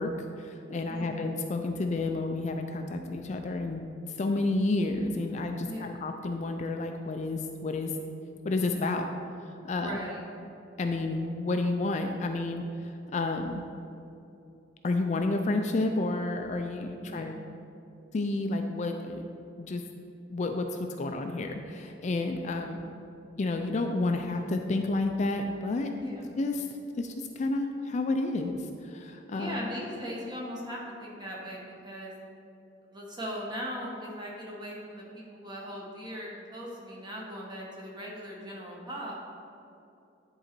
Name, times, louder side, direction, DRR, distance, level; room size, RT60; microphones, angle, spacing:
voice 1, 0.0-3.8 4.2-7.9 8.4-9.1 9.6-9.9 10.8-13.6 14.8-17.4 18.1-19.3 19.6-19.8 20.3-22.8 23.4-25.9 26.4-26.7 27.0-29.6, left 2 dB, 40° left, 5 dB, 0.3 m, -30 dB
voice 2, 9.8-10.2 17.0-17.2 22.6-22.8 26.0-26.4 29.3-32.1 32.9-39.1, equal, 25° right, -3 dB, 1.3 m, -39 dB
10.5 x 3.9 x 4.4 m, 2.7 s
head